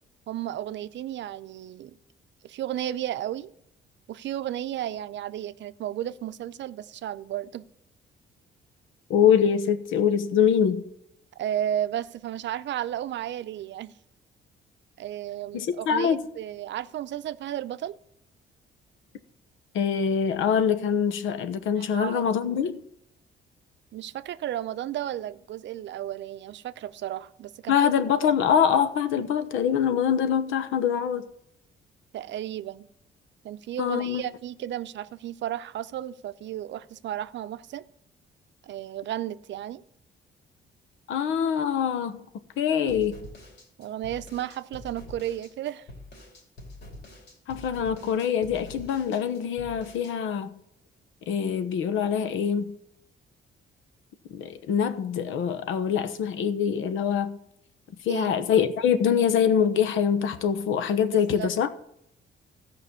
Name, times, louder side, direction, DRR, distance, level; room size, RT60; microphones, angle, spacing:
voice 1, 0.3-2.0 2.4-3.5 4.1-7.6 11.4-13.9 15.0-18.0 21.8-22.2 23.9-27.9 32.1-32.9 33.4-37.8 38.6-39.8 43.8-45.9 58.1-58.3 61.1-61.5, right 12 dB, 65° right, 0.6 m, -33 dB
voice 2, 9.1-10.9 15.5-16.2 19.7-22.8 27.7-31.2 33.8-34.2 41.1-42.2 42.6-43.2 47.5-50.6 51.3-52.7 54.3-57.4 58.0-61.7, left 8 dB, 85° left, 1.0 m, -24 dB
sound 1, 42.9-50.1, left 1 dB, 55° left, 3.2 m, -46 dB
14.0 x 5.3 x 6.8 m
cardioid pair, 90°, 20 cm